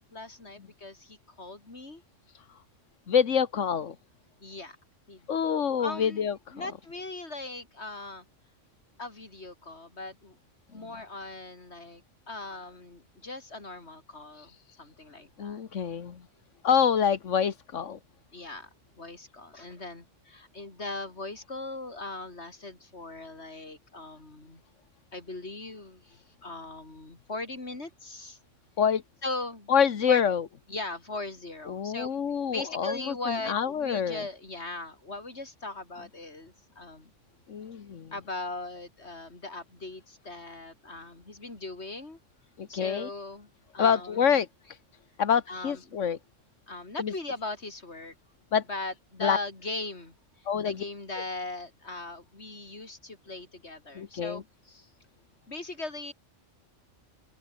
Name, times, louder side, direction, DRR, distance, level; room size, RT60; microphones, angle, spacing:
voice 1, 0.1-2.0 4.4-4.8 5.1-5.3 5.8-8.3 9.0-10.4 10.7-15.6 18.3-18.7 19.0-24.6 25.1-28.4 29.2-29.7 30.1-30.2 30.7-32.1 32.5-37.1 38.1-42.2 42.7-44.4 45.5-46.0 46.7-48.1 48.7-50.2 50.6-54.9 55.5-56.1, left 2 dB, 60° left, 4.2 m, -39 dB
voice 2, 3.1-3.9 5.3-6.5 14.4-14.6 15.4-16.2 16.6-18.0 28.8-29.0 29.7-30.4 31.7-34.2 37.5-38.1 42.6-43.1 43.8-44.8 45.2-46.2 47.0-47.1 48.5-48.6 49.2-49.4 50.5-50.8 53.9-54.4, left 7 dB, 85° left, 1.6 m, -26 dB
open air
omnidirectional pair, 1.2 m